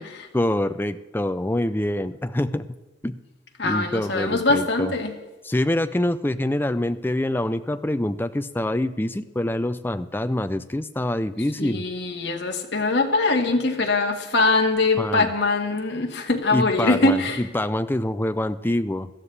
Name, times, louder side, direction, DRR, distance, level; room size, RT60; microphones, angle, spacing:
voice 1, 0.3-2.8 3.0-3.2 3.6-4.9 5.4-11.8 15.0-15.3 16.5-19.1, left 1 dB, 10° left, 11 dB, 0.4 m, -25 dB
voice 2, 3.6-5.1 11.6-17.4, left 3 dB, 65° left, 2 dB, 1.8 m, -22 dB
18.0 x 13.0 x 3.3 m, 1.2 s
head